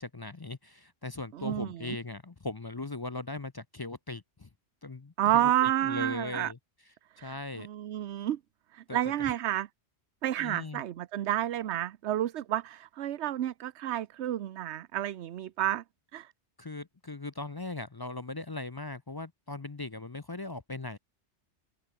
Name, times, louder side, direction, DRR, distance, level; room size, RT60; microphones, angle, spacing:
voice 1, 0.0-4.5 4.8-6.6 7.2-7.7 8.9-9.3 10.4-10.8 16.6-21.0, left 2 dB, 25° left, 0.5 m, -39 dB
voice 2, 1.3-2.0 5.2-6.5 7.2-8.4 8.7-9.7 10.2-15.8 16.1-16.3, right 12 dB, 75° right, 1.0 m, -30 dB
omnidirectional pair, 1.2 m